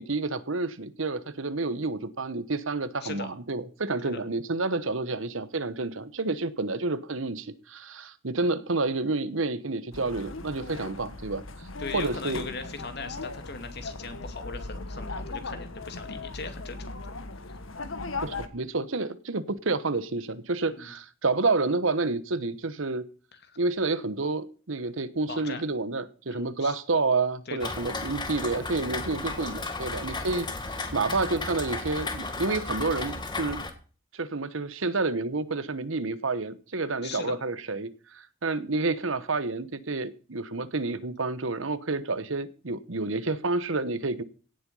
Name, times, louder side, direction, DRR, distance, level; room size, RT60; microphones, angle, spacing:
voice 1, 0.0-11.4 11.9-12.5 18.2-23.0 23.6-30.5 30.9-33.6 34.1-44.2, right 3 dB, 75° right, 14 dB, 1.2 m, -29 dB
sound 1, 9.9-18.5, left 3 dB, 80° left, 1.6 m, -38 dB
voice 2, 11.8-17.2 20.7-20.9 25.3-25.6 26.3-26.8 27.5-27.7 37.0-37.4, left 4 dB, 55° left, 8 dB, 2.4 m, -39 dB
Rain, 27.6-33.7, left 3 dB, 20° left, 1.9 m, -34 dB
17.0 x 7.9 x 5.5 m, 0.38 s
head